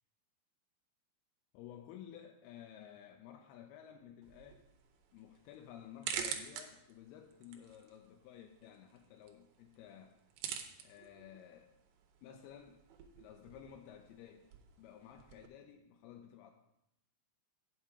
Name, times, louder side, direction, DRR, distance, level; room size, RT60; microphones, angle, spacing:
voice 1, 1.5-4.6 5.1-10.2 10.8-11.7 12.2-12.8 13.2-14.5 14.8-16.5, left 9 dB, 80° left, 3 dB, 2.4 m, -54 dB
sound 1, 4.2-15.5, right 8 dB, 75° right, 2.6 m, -48 dB
8.8 x 6.8 x 4.8 m, 0.81 s
omnidirectional pair, 4.8 m